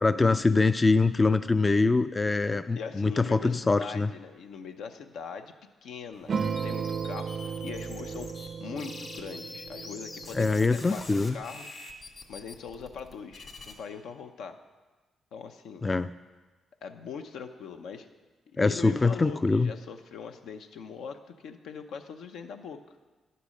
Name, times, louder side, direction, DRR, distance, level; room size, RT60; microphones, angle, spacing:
voice 1, 0.0-4.1 10.3-11.4 15.8-16.1 18.6-19.7, left 3 dB, 25° left, 12 dB, 0.3 m, -24 dB
voice 2, 2.8-5.5 5.8-8.3 8.6-11.7 12.3-14.6 15.3-15.9 16.8-18.1 18.5-22.8, left 6 dB, 85° left, 6 dB, 0.7 m, -41 dB
sound 1, 6.3-8.5 8.8-13.7, left 3 dB, 50° left, 2.1 m, -45 dB
sound 2, 6.3-11.2, right 6 dB, 55° right, 0.4 m, -35 dB
11.0 x 6.9 x 6.4 m, 1.3 s
cardioid pair, 75°, 0 cm